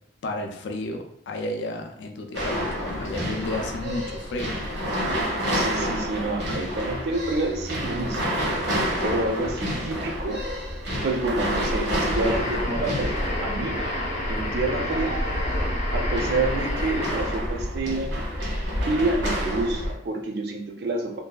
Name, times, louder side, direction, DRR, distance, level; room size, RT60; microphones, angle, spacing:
voice 1, 0.2-4.5, left 1 dB, 65° left, 3 dB, 0.4 m, -32 dB
sound 1, 2.3-19.9, equal, 90° right, 1.0 m, -28 dB
voice 2, 5.5-8.3 9.0-10.4 11.0-13.8 14.3-15.5 15.9-18.5 18.8-21.2, right 2 dB, 55° right, 3 dB, 0.4 m, -28 dB
sound 2, 12.0-17.5, left 1 dB, 40° left, 0.7 m, -31 dB
2.7 x 2.3 x 2.2 m, 0.70 s
head